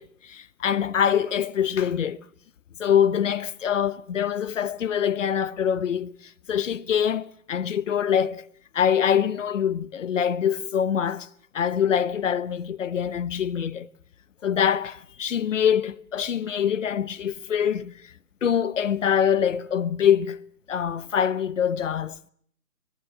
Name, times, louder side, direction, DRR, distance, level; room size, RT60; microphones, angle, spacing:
voice 1, 0.0-2.2 2.8-8.4 8.7-11.3 11.5-13.9 14.4-18.1 18.4-20.4 20.7-22.2, left 8 dB, 55° left, 1.0 m, -24 dB
23.5 x 19.0 x 7.6 m
hypercardioid pair, 155°, 45 cm